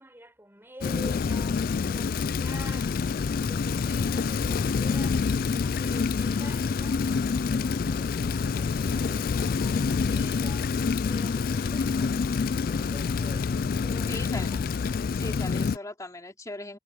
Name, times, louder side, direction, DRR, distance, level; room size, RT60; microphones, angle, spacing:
voice 1, 0.0-5.2 5.6-10.7 11.0-12.2 12.5-15.1, right 1 dB, 10° right, 6.5 m, -48 dB
Rain, 0.8-15.8, left 5 dB, 50° left, 0.3 m, -27 dB
sound 1, 2.8-4.5 7.2-9.2 12.6-12.9, right 1 dB, 30° right, 2.1 m, -51 dB
voice 2, 14.1-14.5 15.1-16.8, left 2 dB, 15° left, 2.8 m, -38 dB
head